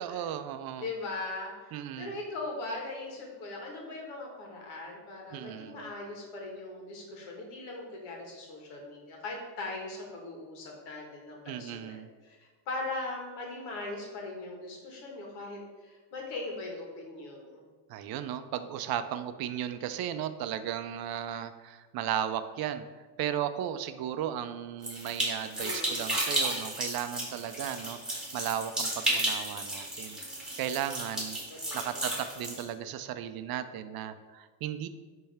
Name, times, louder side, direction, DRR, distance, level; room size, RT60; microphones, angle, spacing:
voice 1, 0.0-0.9 1.7-2.1 5.3-5.9 11.5-12.1 17.9-22.8 23.2-30.2 30.6-31.4 31.7-34.9, right 10 dB, 50° right, 11 dB, 0.5 m, -35 dB
voice 2, 0.8-12.4 12.7-17.6 25.6-26.2 27.6-27.7 31.5-32.1, left 2 dB, 75° left, 0 dB, 1.8 m, -40 dB
sound 1, 24.8-32.6, right 1 dB, ahead, 1.9 m, -33 dB
9.9 x 3.4 x 3.5 m, 1.4 s
cardioid pair, 125°, 50 cm